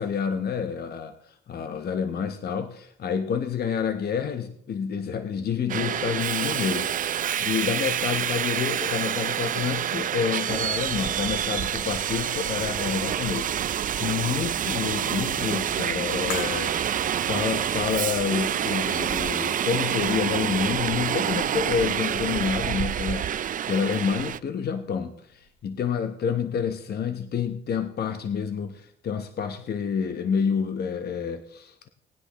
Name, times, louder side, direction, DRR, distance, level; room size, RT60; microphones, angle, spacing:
voice 1, 0.0-17.0 17.3-31.9, left 7 dB, 55° left, 8 dB, 0.9 m, -29 dB
Subway metro underground, 5.7-24.4, right 10 dB, 45° right, 0.4 m, -27 dB
sound 1, 16.3-22.7 23.0-23.1, left 2 dB, 90° left, 3.2 m, -42 dB
19.0 x 10.0 x 3.0 m, 0.67 s
cardioid pair, 90°, 20 cm